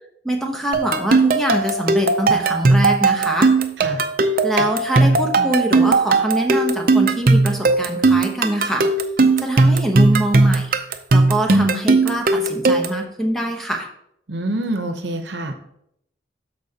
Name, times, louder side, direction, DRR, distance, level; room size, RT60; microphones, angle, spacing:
voice 1, 0.2-3.5 4.4-8.9 9.4-10.8 11.1-13.9, right 1 dB, ahead, 2 dB, 0.9 m, -24 dB
sound 1, 0.7-13.0, right 3 dB, 50° right, 0.5 m, -17 dB
voice 2, 14.3-15.6, right 1 dB, 75° right, 7 dB, 0.8 m, -26 dB
13.0 x 4.7 x 2.9 m, 0.75 s
head